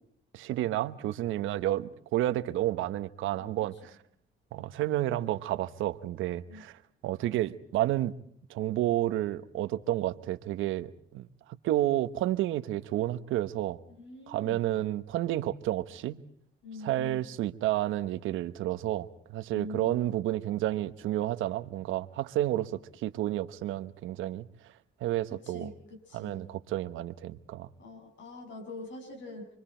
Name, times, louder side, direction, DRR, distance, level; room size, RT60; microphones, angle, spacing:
voice 1, 0.3-4.0 4.5-8.1 8.5-13.8 14.3-16.2 16.8-24.7 25.0-25.7 26.1-27.7, right 14 dB, 90° right, 1.0 m, -31 dB
voice 2, 14.0-14.6 16.6-17.3 19.5-20.0 25.3-26.5 27.8-29.5, left 2 dB, 65° left, 6.7 m, -44 dB
28.0 x 23.5 x 4.4 m
cardioid pair, 90°, 20 cm